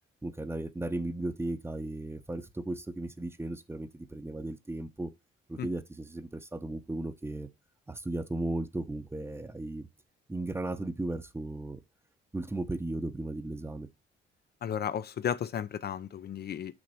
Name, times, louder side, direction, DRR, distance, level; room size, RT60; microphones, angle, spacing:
voice 1, 0.2-5.1 5.5-7.5 7.9-9.9 10.3-11.8 12.3-13.9, right 2 dB, 10° right, 0.8 m, -35 dB
voice 2, 14.6-16.7, left 9 dB, 55° left, 0.7 m, -34 dB
6.4 x 5.8 x 4.3 m
cardioid pair, 90°, 20 cm